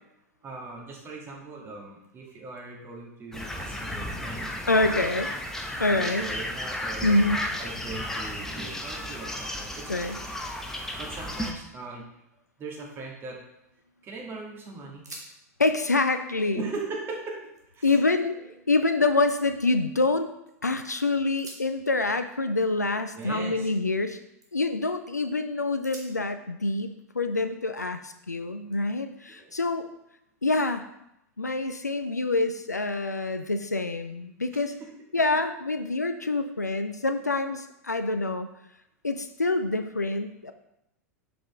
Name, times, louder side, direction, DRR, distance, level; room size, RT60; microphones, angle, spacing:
voice 1, 0.4-5.0 5.9-7.2 7.6-10.2 11.0-12.0 12.6-13.4 14.0-15.1 16.3-17.4 17.7-18.0 23.1-23.7 29.4-29.5 34.5-34.9, right 3 dB, 25° right, -1 dB, 1.8 m, -39 dB
sound 1, 3.3-11.5, left 1 dB, 5° left, 0.8 m, -33 dB
voice 2, 4.7-5.3 5.8-6.3 7.0-7.5 9.9-10.2 15.6-16.7 17.8-20.3 20.6-24.2 24.5-29.8 30.4-30.9 31.4-34.7 35.1-38.5 39.0-40.5, left 2 dB, 85° left, 9 dB, 0.4 m, -26 dB
sound 2, 13.3-14.0 14.4-14.5 14.9-15.3 15.6-17.6 18.1-18.6 19.0-20.5 21.2-24.1 24.4-24.8 25.2-25.4 25.8-28.1 28.7-29.9, right 2 dB, 80° right, 1.5 m, -52 dB
7.0 x 4.9 x 3.5 m, 0.83 s
figure-of-eight pair, 90°, 9 cm